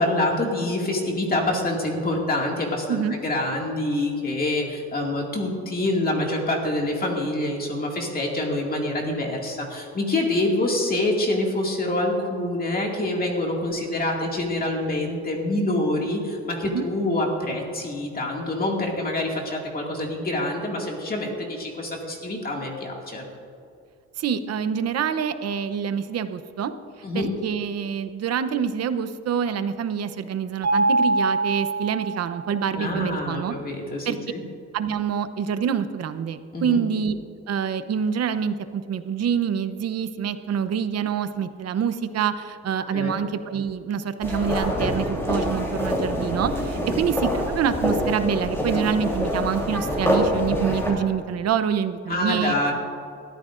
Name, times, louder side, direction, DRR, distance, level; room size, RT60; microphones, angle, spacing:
voice 1, 0.0-23.2 27.0-27.3 32.8-34.4 36.5-36.8 42.9-43.2 46.9-47.0 52.1-52.7, left 1 dB, 30° left, -1 dB, 2.1 m, -26 dB
voice 2, 24.2-26.7 27.1-33.5 34.1-34.2 34.7-37.2 37.5-52.5, right 7 dB, 55° right, 11 dB, 0.8 m, -26 dB
Mallet percussion, 30.6-32.6, right 2 dB, 25° right, 1.5 m, -23 dB
sound 1, 44.2-50.9, equal, 10° left, 3.2 m, -25 dB
21.0 x 14.0 x 2.5 m, 2.4 s
cardioid pair, 145°, 29 cm